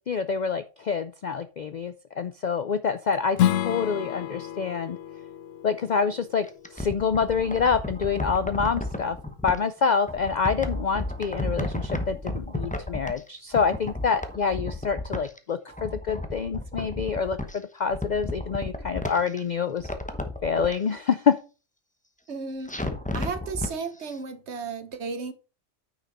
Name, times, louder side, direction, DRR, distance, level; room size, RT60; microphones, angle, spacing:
voice 1, 0.1-5.0 5.6-6.5 6.7-9.2 9.4-19.9 20.4-21.4, left 6 dB, 60° left, 0.4 m, -26 dB
Strum, 3.3-8.5, left 12 dB, 80° left, 0.9 m, -31 dB
sound 1, 6.4-9.6 10.1-13.3 13.5-15.4 15.7-17.6 17.9-19.4 19.8-20.8 22.7-23.7 24.1-24.2, left 1 dB, 5° left, 0.8 m, -32 dB
voice 2, 22.3-22.9 23.1-25.3, right 5 dB, 60° right, 1.3 m, -34 dB
9.5 x 5.8 x 4.1 m
omnidirectional pair, 1.3 m